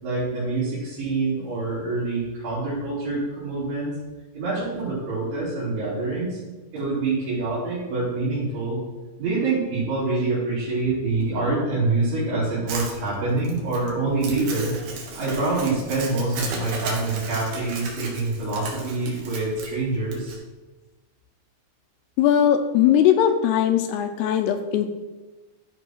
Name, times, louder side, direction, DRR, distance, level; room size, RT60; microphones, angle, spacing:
voice 1, 0.0-3.9 4.3-6.4 6.7-8.8 9.2-14.8 15.1-20.4, right 3 dB, 65° right, -11 dB, 5.4 m, -26 dB
Crumpling crinkling, 12.7-20.4, right 4 dB, 90° right, 3.8 m, -35 dB
voice 2, 22.2-24.9, left 9 dB, 85° left, 6 dB, 2.6 m, -19 dB
13.5 x 5.3 x 4.6 m, 1.2 s
omnidirectional pair, 4.9 m